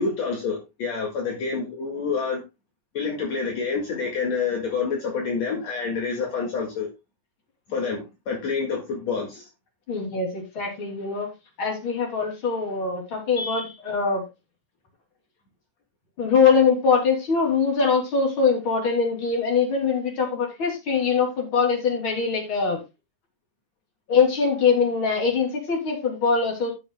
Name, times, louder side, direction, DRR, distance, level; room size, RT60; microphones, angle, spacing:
voice 1, 0.0-2.4 2.9-6.9 7.7-9.5, left 5 dB, 60° left, -1 dB, 3.1 m, -27 dB
voice 2, 9.9-11.3 11.6-14.2 16.2-22.8 24.1-26.7, left 5 dB, 40° left, 1 dB, 3.7 m, -22 dB
16.5 x 6.9 x 2.2 m, 0.25 s
omnidirectional pair, 3.4 m